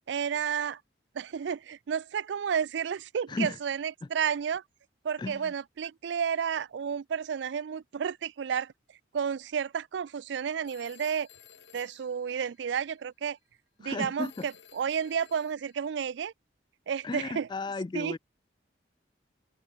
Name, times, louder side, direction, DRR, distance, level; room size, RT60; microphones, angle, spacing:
voice 1, 0.1-0.8 1.1-4.6 5.0-8.7 9.1-11.3 11.7-13.4 13.8-16.3 16.9-17.5 17.9-18.2, right 7 dB, 75° right, 0.4 m, -31 dB
voice 2, 3.3-3.6 5.2-5.5 13.8-14.5 17.0-18.2, left 3 dB, 25° left, 0.3 m, -34 dB
Telephone, 10.6-13.0 14.2-15.9, left 8 dB, 75° left, 3.2 m, -56 dB
open air
head